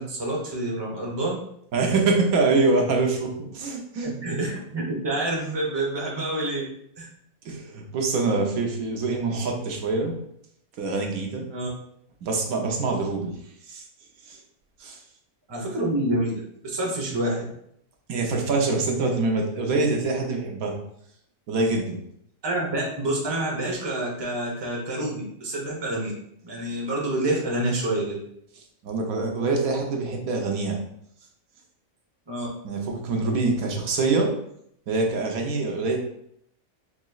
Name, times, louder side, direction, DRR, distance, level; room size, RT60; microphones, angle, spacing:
voice 1, 0.0-1.4 4.0-6.6 7.0-7.1 11.5-11.7 15.5-16.3 16.6-17.4 22.4-26.1 26.4-28.2 32.3-32.5, right 1 dB, 20° right, -3 dB, 0.8 m, -27 dB
voice 2, 1.7-4.1 7.4-10.1 10.8-11.5 12.2-13.4 13.7-13.8 14.3-14.4 14.8-15.0 18.1-20.8 21.5-22.0 28.8-30.8 32.6-34.3 34.9-36.0, right 3 dB, 90° right, 1 dB, 1.2 m, -25 dB
5.0 x 3.0 x 2.3 m, 0.70 s
omnidirectional pair, 1.4 m